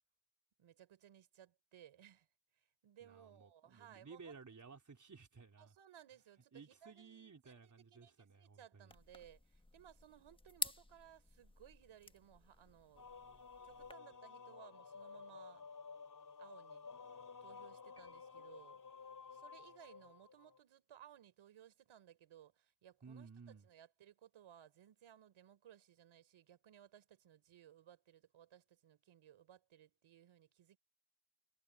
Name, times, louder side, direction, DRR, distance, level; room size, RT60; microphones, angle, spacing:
voice 1, 0.6-2.3 2.6-4.4 5.6-15.7 16.4-16.9 17.4-18.8 19.3-23.3 23.6-30.8, right 10 dB, 70° right, 3.8 m, -62 dB
voice 2, 3.0-5.8 6.5-9.0 23.0-23.7, right 5 dB, 35° right, 4.3 m, -57 dB
sound 1, 8.9-13.9, left 2 dB, 10° left, 1.6 m, -49 dB
sound 2, 13.0-20.6, left 5 dB, 40° left, 5.6 m, -54 dB
sound 3, 18.0-19.2, equal, 50° right, 3.9 m, -72 dB
supercardioid pair, 60°, 49 cm